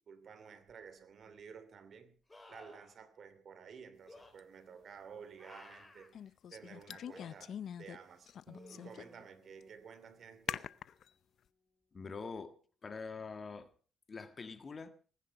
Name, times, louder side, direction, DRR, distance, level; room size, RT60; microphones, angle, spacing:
voice 1, 0.1-2.2 2.5-8.3 8.7-10.7, right 6 dB, 55° right, 2.7 m, -53 dB
sound 1, 0.7-0.8 2.3-3.0 4.0-4.3 5.4-6.1 7.1-7.3 8.5-9.2 12.4-12.5, left 2 dB, 20° left, 4.0 m, -56 dB
sound 2, 4.4-4.5 6.1-8.0 8.3-9.2 9.6-9.7 10.5-11.1, left 9 dB, 65° left, 0.6 m, -43 dB
Acoustic guitar, 8.5-12.2, right 3 dB, 30° right, 2.3 m, -63 dB
voice 2, 11.9-12.6 12.8-13.7 14.1-14.9, left 4 dB, 35° left, 1.6 m, -44 dB
19.5 x 10.5 x 5.7 m
cardioid pair, 90°, 0 cm